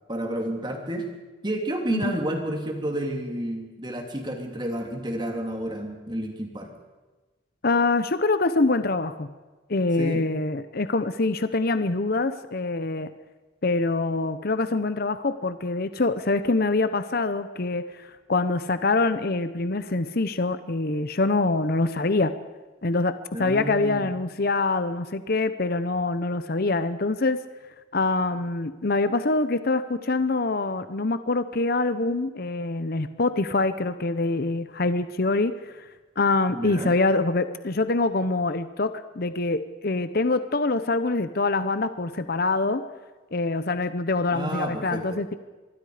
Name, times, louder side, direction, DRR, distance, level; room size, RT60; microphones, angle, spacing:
voice 1, 0.1-1.1 1.4-6.7 10.0-10.2 23.3-24.1 36.5-36.9 44.3-45.2, right 1 dB, 20° right, 2 dB, 3.0 m, -30 dB
voice 2, 7.6-9.3 9.7-13.1 13.6-22.3 22.8-23.1 23.4-27.4 27.9-35.8 36.2-42.8 43.3-45.3, left 3 dB, 50° left, 11 dB, 0.8 m, -25 dB
25.5 x 22.0 x 5.0 m, 1.2 s
head